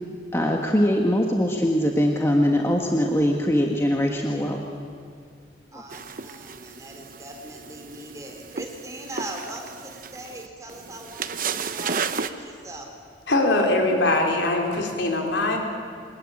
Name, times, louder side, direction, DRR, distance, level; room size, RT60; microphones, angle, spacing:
voice 1, 0.3-4.6 5.7-5.8, equal, 15° left, 1 dB, 1.5 m, -22 dB
voice 2, 5.7-12.9, right 1 dB, 20° right, 2 dB, 3.6 m, -40 dB
sound 1, 5.9-12.3, right 5 dB, 50° right, 0.9 m, -33 dB
voice 3, 13.3-15.6, left 2 dB, 85° left, 1 dB, 4.1 m, -22 dB
23.5 x 20.5 x 8.9 m, 2.2 s
head